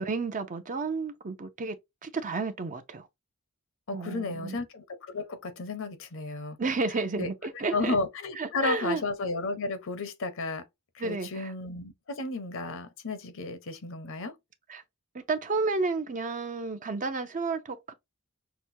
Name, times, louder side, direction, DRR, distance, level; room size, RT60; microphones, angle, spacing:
voice 1, 0.0-1.8 2.0-3.1 3.9-4.6 6.6-8.0 8.4-9.0 11.0-11.5 14.7-14.8 15.1-17.9, right 3 dB, 35° right, 0.6 m, -31 dB
voice 2, 3.9-6.6 7.2-7.3 7.7-10.6 11.0-14.3, left 3 dB, 65° left, 0.8 m, -33 dB
5.9 x 2.2 x 2.7 m
head